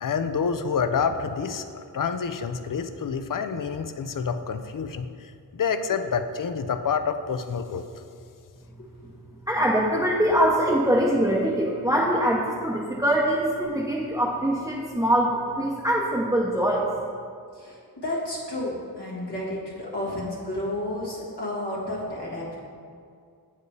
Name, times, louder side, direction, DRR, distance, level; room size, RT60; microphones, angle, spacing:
voice 1, 0.0-7.8, left 6 dB, 55° left, 9 dB, 0.5 m, -28 dB
voice 2, 9.5-16.9, right 1 dB, 10° right, -4 dB, 0.7 m, -23 dB
voice 3, 17.5-22.5, left 1 dB, 80° left, -6 dB, 1.6 m, -32 dB
7.9 x 4.7 x 3.3 m, 2.3 s
wide cardioid pair, 40°, 40 cm